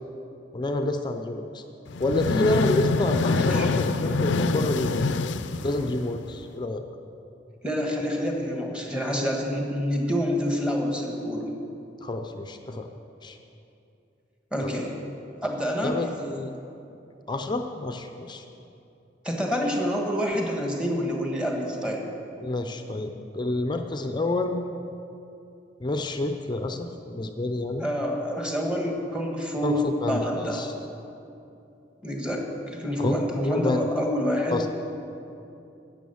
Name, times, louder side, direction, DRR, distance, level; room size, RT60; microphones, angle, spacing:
voice 1, 0.5-1.6 2.0-5.0 5.6-6.8 12.0-12.9 13.2-13.4 14.6-14.7 15.8-16.5 17.3-18.4 22.4-24.6 25.8-27.8 29.6-30.7 33.0-33.8 34.5-34.7, left 2 dB, 25° left, 6 dB, 0.6 m, -28 dB
sound 1, 1.9-6.4, left 3 dB, 70° left, 0.5 m, -25 dB
voice 2, 3.4-3.7 7.6-11.5 14.5-14.9 15.4-16.0 19.2-22.1 27.8-30.7 32.0-32.4 32.7-34.6, equal, 5° right, 0 dB, 1.6 m, -27 dB
12.5 x 8.9 x 7.1 m, 2.7 s
head